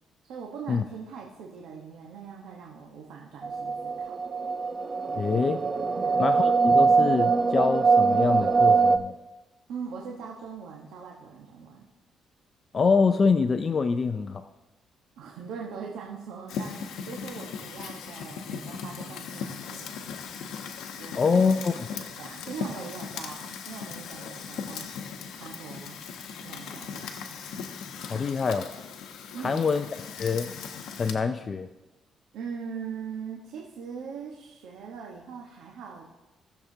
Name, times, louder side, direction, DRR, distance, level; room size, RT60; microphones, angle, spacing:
voice 1, 0.2-4.2 5.9-6.3 9.7-11.9 15.2-20.1 21.0-24.9 25.3-26.0 26.4-27.4 28.1-28.3 29.3-29.7 32.3-36.1, right 6 dB, 85° right, -2 dB, 1.2 m, -41 dB
sound 1, 3.4-9.0, right 4 dB, 30° right, 0.6 m, -22 dB
voice 2, 5.2-5.6 6.2-9.1 12.7-14.4 21.2-21.9 28.1-28.7 29.4-29.9 30.2-30.5 31.0-31.7, left 5 dB, 40° left, 9 dB, 0.5 m, -25 dB
Fire, 16.5-31.1, left 6 dB, 85° left, 1.0 m, -38 dB
19.0 x 7.2 x 2.8 m, 1.1 s
cardioid pair, 90°, 0 cm